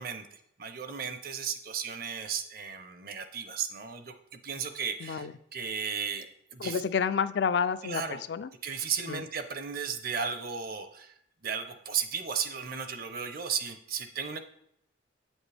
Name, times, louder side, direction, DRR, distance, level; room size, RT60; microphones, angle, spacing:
voice 1, 0.0-6.8 7.8-8.2 8.6-11.1 11.4-14.4, right 6 dB, 50° right, 9 dB, 0.7 m, -35 dB
voice 2, 5.0-5.3 6.6-8.5 9.1-9.2, left 6 dB, 60° left, 12 dB, 0.3 m, -29 dB
8.5 x 7.2 x 3.4 m, 0.73 s
head